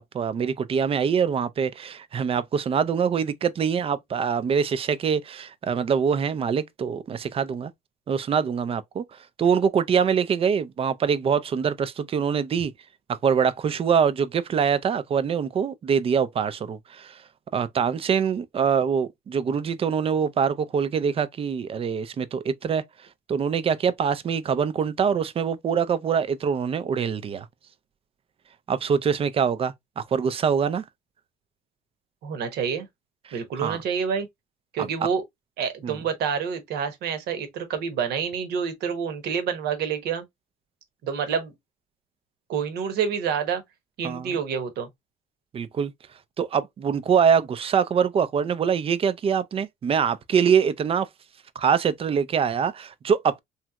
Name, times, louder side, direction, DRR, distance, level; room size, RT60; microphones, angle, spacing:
voice 1, 0.0-7.7 8.1-9.0 9.4-12.7 13.1-17.2 17.5-22.8 23.3-27.5 28.7-30.8 33.3-33.8 34.8-34.9 35.8-36.0 44.0-44.4 45.5-45.9 46.4-51.1 51.6-53.4, right 7 dB, 35° right, 0.4 m, -24 dB
voice 2, 32.2-32.9 33.3-34.3 34.7-35.2 35.6-40.2 41.0-41.5 42.5-43.6 44.0-44.9, right 7 dB, 75° right, 1.0 m, -28 dB
3.2 x 2.9 x 2.2 m
cardioid pair, 110°, 17 cm